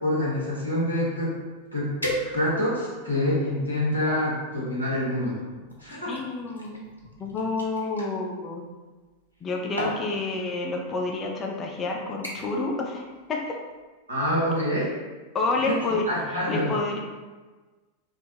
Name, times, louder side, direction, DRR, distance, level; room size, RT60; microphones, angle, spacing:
voice 1, 0.0-1.3 1.7-1.9 2.3-5.3 5.8-6.1 14.1-14.9 16.1-16.7, left 1 dB, 85° right, -7 dB, 0.9 m, -26 dB
sound 1, 1.4-1.5 2.0-2.8 3.4-4.3 5.2-8.1 9.2-9.4 9.8-10.1 11.0-11.1 11.5-11.8 12.2-12.6 13.0-13.3 13.7-13.8, equal, 85° left, 0.4 m, -35 dB
voice 2, 6.1-6.9 7.2-8.6 9.4-13.6 15.3-16.1 16.5-17.0, left 3 dB, 25° left, 0 dB, 0.4 m, -29 dB
2.1 x 2.0 x 3.2 m, 1.3 s
figure-of-eight pair, 90°, 0 cm